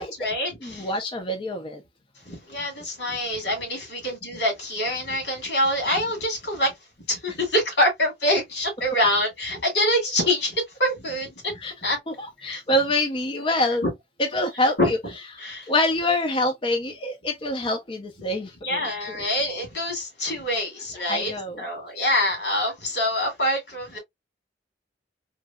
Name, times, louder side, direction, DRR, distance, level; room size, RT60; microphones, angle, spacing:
voice 1, 0.0-0.9 2.2-6.7 7.1-12.0 12.4-12.6 13.8-13.9 14.8-14.9 15.4-15.7 18.6-21.3 21.6-24.0, left 1 dB, 80° left, 2.3 m, -25 dB
voice 2, 0.6-1.8 11.6-11.7 12.1-13.8 14.3-15.0 15.6-18.8 19.1-19.2 21.1-21.6, left 1 dB, 30° left, 0.6 m, -25 dB
3.9 x 3.2 x 2.2 m
head